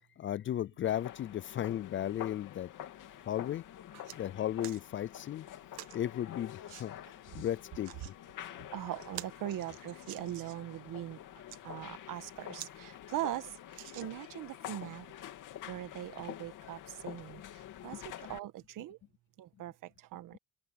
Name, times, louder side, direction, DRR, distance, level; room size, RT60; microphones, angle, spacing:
voice 1, 0.2-2.7 3.3-3.6 4.1-5.5 5.9-8.1, left 11 dB, 35° left, 0.4 m, -35 dB
sound 1, 0.8-18.4, left 12 dB, 60° left, 2.9 m, -47 dB
sound 2, 3.8-4.2 4.6-4.8 5.7-6.0 6.7-6.9 7.6-8.1 8.6-8.7 9.0-10.7 11.3-11.6 12.2-12.3 12.6-12.7 13.1-13.2 13.7-14.4 15.1-15.2, right 17 dB, 90° right, 1.5 m, -48 dB
voice 2, 8.4-11.2 11.6-15.1 15.7-19.0 19.4-20.4, right 13 dB, 65° right, 1.5 m, -41 dB
open air
cardioid pair, 140°, 35 cm